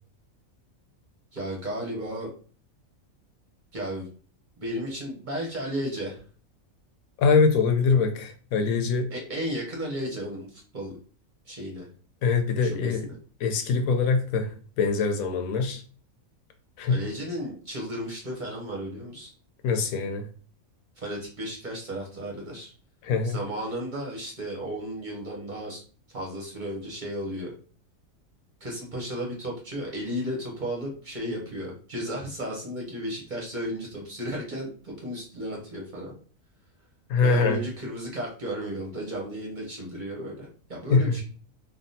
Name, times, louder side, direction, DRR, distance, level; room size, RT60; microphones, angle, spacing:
voice 1, 1.3-2.3 3.7-4.1 4.6-6.2 9.1-10.9 11.5-11.9 12.6-13.2 16.9-19.3 21.0-22.7 23.2-25.8 26.1-27.5 28.6-36.1 37.2-41.2, equal, 40° right, -2 dB, 0.9 m, -34 dB
voice 2, 7.2-9.1 12.2-13.1 13.4-14.5 14.8-15.8 16.8-17.0 19.6-20.3 23.0-23.4 37.1-37.6 40.9-41.2, left 4 dB, 85° left, 6 dB, 1.0 m, -23 dB
3.5 x 2.2 x 2.7 m, 0.41 s
omnidirectional pair, 1.5 m